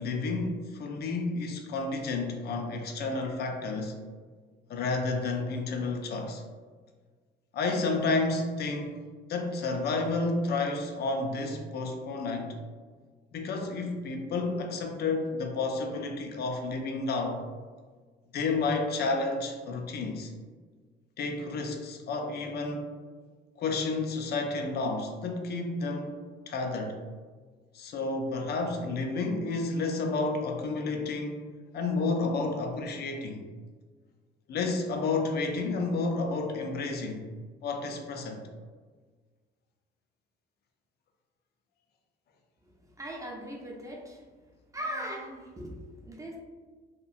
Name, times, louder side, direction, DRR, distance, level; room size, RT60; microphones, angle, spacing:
voice 1, 0.0-4.0 4.7-6.4 7.5-8.9 9.3-12.5 13.3-17.4 18.3-20.3 21.2-22.9 23.6-26.1 26.5-27.0 27.7-31.4 31.7-33.5 34.5-37.3 37.6-38.4, left 3 dB, 55° left, 4 dB, 0.4 m, -31 dB
voice 2, 42.6-44.3 44.7-46.4, equal, 15° right, -1 dB, 0.5 m, -39 dB
2.9 x 2.4 x 2.4 m, 1.5 s
cardioid pair, 90°, 20 cm